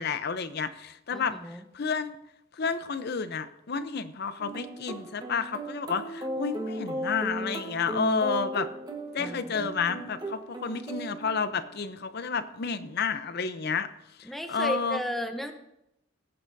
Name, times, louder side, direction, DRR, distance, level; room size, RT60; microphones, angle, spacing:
voice 1, 0.0-2.2 2.5-8.7 9.1-13.9 14.2-15.0, left 5 dB, 50° left, 12 dB, 0.6 m, -31 dB
voice 2, 1.1-1.6 9.2-9.7 14.2-15.5, equal, ahead, 5 dB, 0.8 m, -34 dB
sound 1, 4.4-11.9, right 1 dB, 20° right, 1.1 m, -36 dB
18.5 x 8.8 x 2.6 m, 0.83 s
head